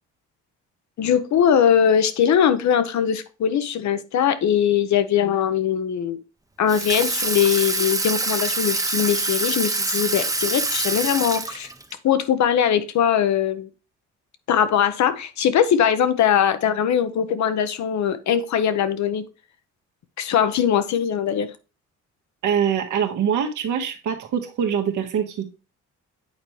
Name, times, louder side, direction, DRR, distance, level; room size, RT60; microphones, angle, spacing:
voice 1, 1.0-6.2 6.6-11.7 12.0-13.7 14.5-19.2 20.2-21.5, left 8 dB, 65° left, 12 dB, 0.9 m, -21 dB
Water tap faucet / Sink (filling or washing), 6.7-11.9, right 2 dB, 10° right, 0.7 m, -25 dB
voice 2, 22.4-25.5, right 8 dB, 80° right, 4 dB, 1.5 m, -24 dB
8.8 x 4.4 x 3.2 m, 0.31 s
cardioid pair, 90°, 30 cm